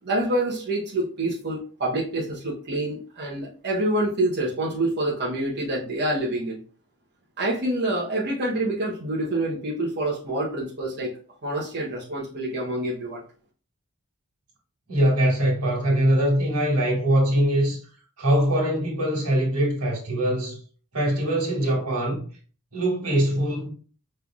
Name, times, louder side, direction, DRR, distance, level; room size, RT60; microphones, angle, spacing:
voice 1, 0.0-6.6 7.4-11.1 11.4-13.2, right 1 dB, 50° right, 0.9 m, -27 dB
voice 2, 14.9-17.8 18.2-20.6 20.9-22.3 22.7-23.7, right 1 dB, 90° right, 1.9 m, -22 dB
5.4 x 3.2 x 2.4 m
head